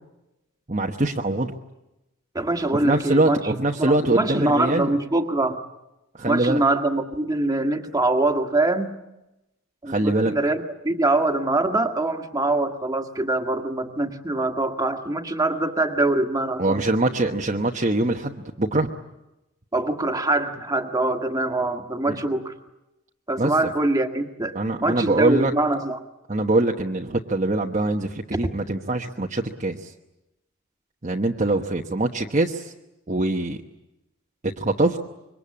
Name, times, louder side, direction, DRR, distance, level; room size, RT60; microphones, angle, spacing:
voice 1, 0.7-1.5 2.8-4.9 6.2-6.6 9.9-10.3 16.6-18.9 22.1-22.2 23.4-23.5 24.5-25.5 26.3-29.9 31.0-32.7 33.1-33.6 34.4-35.0, right 2 dB, 30° right, 0 dB, 1.2 m, -23 dB
voice 2, 2.4-3.4 3.8-5.6 6.2-8.9 9.8-16.8 19.7-22.5 23.3-24.5 24.8-26.0 28.3-28.4, right 2 dB, 15° right, 4 dB, 1.8 m, -23 dB
26.5 x 23.5 x 8.6 m, 0.93 s
head